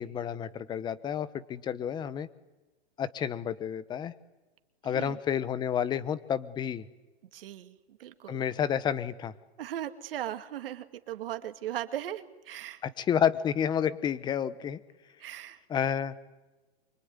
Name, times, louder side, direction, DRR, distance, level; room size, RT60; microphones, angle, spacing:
voice 1, 0.0-2.3 3.0-4.1 4.8-6.8 8.3-9.3 12.8-14.8 15.7-16.1, left 8 dB, 15° left, 16 dB, 1.0 m, -30 dB
voice 2, 4.8-5.2 7.3-8.4 9.6-12.8 15.2-15.6, right 12 dB, 55° right, 8 dB, 2.4 m, -38 dB
24.5 x 23.5 x 9.7 m, 1.1 s
hypercardioid pair, 150°, 33 cm